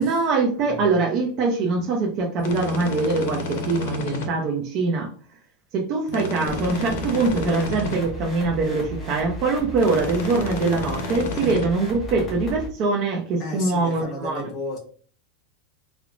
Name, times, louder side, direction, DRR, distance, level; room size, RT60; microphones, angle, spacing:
voice 1, 0.0-5.1 5.7-14.5, right 3 dB, 40° right, 0.5 m, -23 dB
sound 1, 2.4-4.3 6.1-8.0 9.8-11.7, left 3 dB, 65° left, 0.6 m, -30 dB
sound 2, 6.5-12.7, right 1 dB, 10° left, 0.7 m, -35 dB
voice 2, 13.4-14.8, left 2 dB, 35° left, 0.9 m, -33 dB
2.9 x 2.0 x 2.5 m
supercardioid pair, 155°, 0 cm